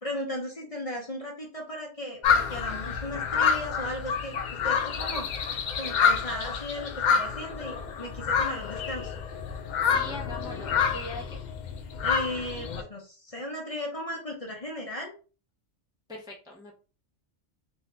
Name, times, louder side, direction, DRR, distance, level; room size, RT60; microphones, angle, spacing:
voice 1, 0.0-4.3 4.6-5.3 5.8-9.1 12.0-15.1, left 1 dB, 35° left, 0 dB, 0.8 m, -36 dB
sound 1, 2.2-12.8, left 6 dB, 60° left, 0.4 m, -28 dB
voice 2, 9.8-11.4 16.1-16.7, left 1 dB, 5° right, -2 dB, 0.5 m, -41 dB
2.7 x 2.7 x 3.3 m, 0.35 s
omnidirectional pair, 1.2 m